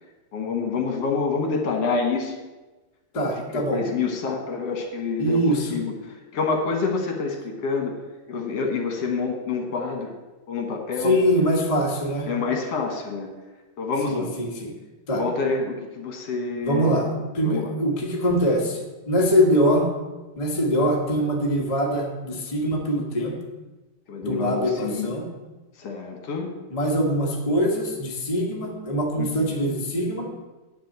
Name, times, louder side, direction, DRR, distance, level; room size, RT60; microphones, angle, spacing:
voice 1, 0.3-2.4 3.1-7.9 8.3-10.1 10.5-11.1 12.3-13.3 13.8-14.3 15.1-17.0 17.4-17.7 24.1-25.1 25.8-26.5 29.2-29.5, left 4 dB, 60° left, 2 dB, 2.1 m, -27 dB
voice 2, 3.1-3.8 5.2-5.7 11.0-12.3 14.0-14.7 15.1-15.2 16.6-17.1 17.3-18.8 19.1-19.9 20.4-23.3 24.2-25.2 26.7-30.3, equal, 45° left, -1 dB, 0.4 m, -23 dB
10.0 x 4.6 x 7.9 m, 1.2 s
omnidirectional pair, 3.6 m